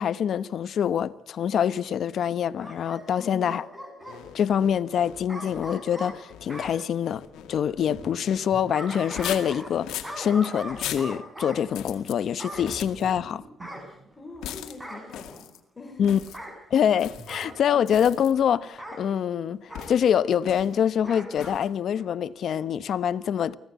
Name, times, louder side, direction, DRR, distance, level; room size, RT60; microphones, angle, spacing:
voice 1, 0.0-3.6 4.3-7.2 7.5-13.4 16.0-16.2 16.7-23.5, left 8 dB, 65° left, 1.0 m, -25 dB
Bark / Growling, 2.6-4.2 5.3-6.7 8.4-9.8 10.0-11.6 12.4-12.7 13.6-14.4 14.8-15.1 16.2-16.6 17.3-17.6 18.8-19.0 19.7-19.9 21.0-21.6 22.0-22.1, equal, 10° right, 7.6 m, -39 dB
voice 2, 3.1-3.6 14.2-16.2, left 3 dB, 25° left, 4.6 m, -43 dB
sound 1, 4.0-8.4 9.0-10.2 10.7-11.1 11.7-12.2 12.5-13.1 14.4-14.8 15.1-15.6 16.0-16.4 17.0-17.5 17.9-18.3 19.7-20.1 20.4-20.8 21.4-21.7, left 11 dB, 85° left, 2.2 m, -39 dB
sound 2, 7.2-10.0 12.6-14.6 17.0-18.4, right 2 dB, 45° right, 7.9 m, -48 dB
25.0 x 17.5 x 8.2 m
cardioid pair, 90°, 0 cm